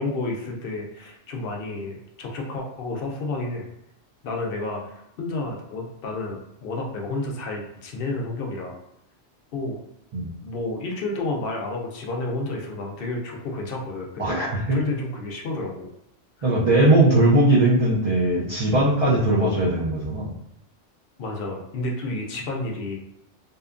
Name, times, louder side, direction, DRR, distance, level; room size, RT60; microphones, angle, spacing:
voice 1, 0.0-3.7 4.2-8.8 9.5-9.8 10.4-15.9 16.4-16.5 21.2-23.0, left 2 dB, 60° left, 0 dB, 0.6 m, -31 dB
voice 2, 14.2-14.8 16.4-20.3, right 1 dB, 45° right, -8 dB, 0.4 m, -19 dB
2.7 x 2.2 x 2.4 m, 0.79 s
omnidirectional pair, 1.2 m